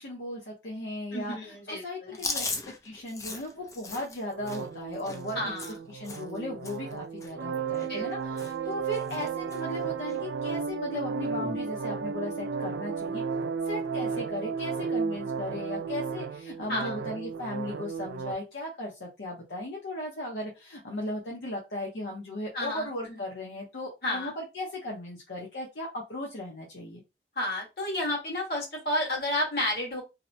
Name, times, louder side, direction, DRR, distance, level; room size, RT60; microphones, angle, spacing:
voice 1, 0.0-2.5 2.8-5.5 5.9-13.2 13.6-27.0, left 1 dB, 85° left, -2 dB, 0.7 m, -37 dB
voice 2, 1.1-2.2 5.3-5.7 7.8-8.1 16.7-16.9 22.5-23.2 24.0-24.3 27.3-30.0, left 1 dB, 60° left, -2 dB, 1.4 m, -31 dB
Chewing mastication, 2.1-6.4 6.6-6.9 7.2-8.1 8.4-8.7 8.9-9.6 10.0-10.2 11.2-11.6, left 3 dB, 20° left, 0.3 m, -38 dB
sound 1, 4.3-18.3, right 5 dB, 90° right, 0.3 m, -34 dB
2.7 x 2.1 x 2.6 m, 0.25 s
head